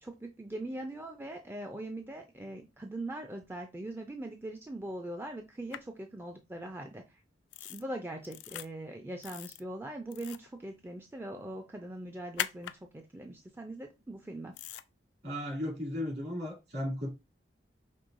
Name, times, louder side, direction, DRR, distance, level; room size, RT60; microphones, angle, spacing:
voice 1, 0.0-7.0 7.7-14.5, right 1 dB, 10° right, 0.4 m, -41 dB
sound 1, 5.7-5.8 7.5-7.8 8.2-8.7 9.2-9.6 10.1-10.5 12.4-12.8 14.6-14.8, left 11 dB, 70° left, 0.3 m, -39 dB
voice 2, 15.2-17.1, left 1 dB, 60° right, 2.5 m, -35 dB
5.4 x 3.0 x 2.5 m
head